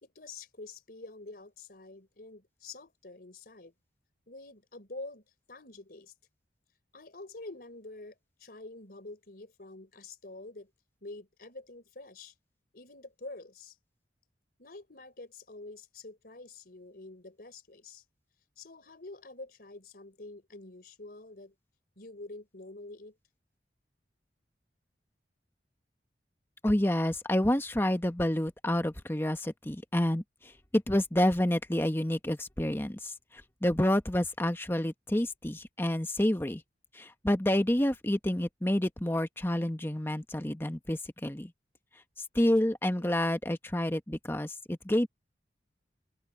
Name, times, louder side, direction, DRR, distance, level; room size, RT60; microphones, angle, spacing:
voice 1, 0.0-3.7 4.3-5.2 5.5-6.1 6.9-10.7 11.0-12.3 12.7-13.8 14.6-18.0 18.6-21.5 22.0-23.2 43.0-43.1, left 2 dB, 55° left, 4.5 m, -47 dB
voice 2, 26.6-36.6 36.9-41.5 42.3-45.1, left 1 dB, 15° left, 1.1 m, -29 dB
open air
head